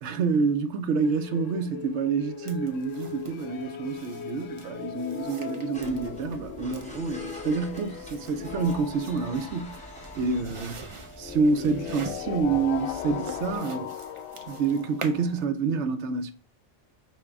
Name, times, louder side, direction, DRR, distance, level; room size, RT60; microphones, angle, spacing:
voice 1, 0.0-9.9 10.2-10.8 11.2-13.9 14.5-16.3, right 4 dB, 70° right, 0.9 m, -28 dB
sound 1, 1.0-15.5, left 9 dB, 80° left, 0.9 m, -39 dB
sound 2, 2.5-15.5, right 4 dB, 55° right, 0.3 m, -46 dB
sound 3, 5.7-13.6, left 1 dB, 5° left, 0.7 m, -44 dB
5.0 x 2.7 x 3.4 m
omnidirectional pair, 1.3 m